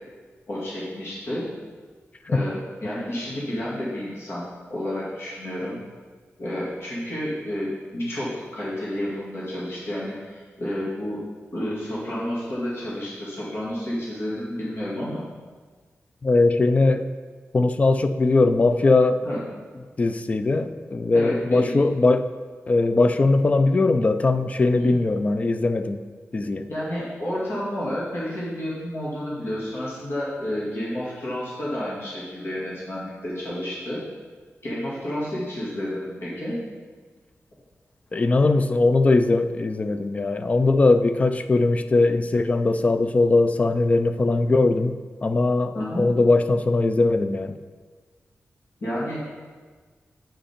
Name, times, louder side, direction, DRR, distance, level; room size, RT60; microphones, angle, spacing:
voice 1, 0.5-1.5 2.3-4.4 4.7-5.8 6.4-11.2 11.5-15.2 19.2-19.4 21.1-21.8 24.8-24.9 26.7-34.0 34.6-36.6 45.7-46.1 48.8-49.2, left 1 dB, 55° left, -7 dB, 2.2 m, -30 dB
voice 2, 16.2-17.0 17.5-19.2 20.0-22.3 22.7-26.0 26.3-26.7 38.1-47.6, left 3 dB, 30° left, 9 dB, 0.4 m, -20 dB
8.8 x 5.1 x 5.1 m, 1.5 s
wide cardioid pair, 175°, 5 cm